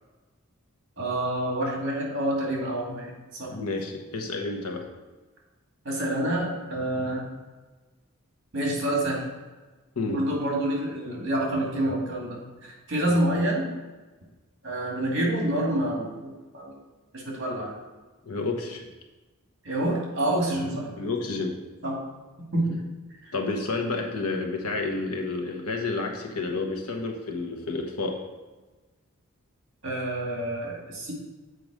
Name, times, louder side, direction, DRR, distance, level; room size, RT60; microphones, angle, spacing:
voice 1, 1.0-3.1 3.4-3.5 5.8-7.3 8.5-9.2 10.0-13.7 14.6-16.7 17.1-17.7 19.6-20.9 21.8-22.0 22.5-22.8 29.8-31.1, right 1 dB, 55° right, -2 dB, 2.5 m, -27 dB
voice 2, 3.5-4.9 10.0-10.3 13.1-13.2 18.2-18.8 21.0-21.6 23.3-28.2, left 3 dB, 80° left, 3 dB, 1.2 m, -30 dB
7.9 x 4.8 x 5.0 m, 1.2 s
head